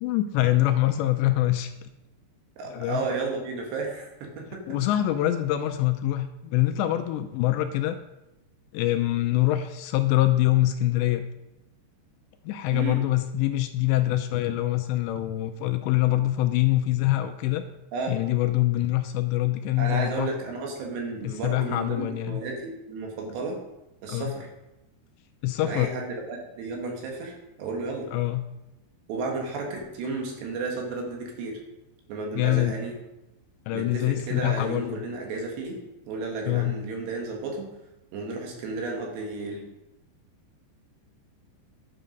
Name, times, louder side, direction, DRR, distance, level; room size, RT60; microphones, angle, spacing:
voice 1, 0.0-1.9 2.7-3.0 4.7-8.0 8.7-11.2 12.5-17.6 18.1-20.3 21.2-22.4 24.1-24.3 25.4-25.9 28.1-28.5 32.3-32.7 33.7-35.0 36.5-36.8, left 15 dB, 80° left, 8 dB, 2.7 m, -24 dB
voice 2, 2.6-4.6 12.7-13.0 17.9-18.1 19.8-23.6 24.0-24.5 25.6-28.1 29.1-31.6 32.1-33.0 33.7-35.8 36.1-37.7 38.1-39.6, right 3 dB, 70° right, 1 dB, 3.7 m, -33 dB
11.0 x 7.0 x 5.2 m, 0.94 s
omnidirectional pair, 5.3 m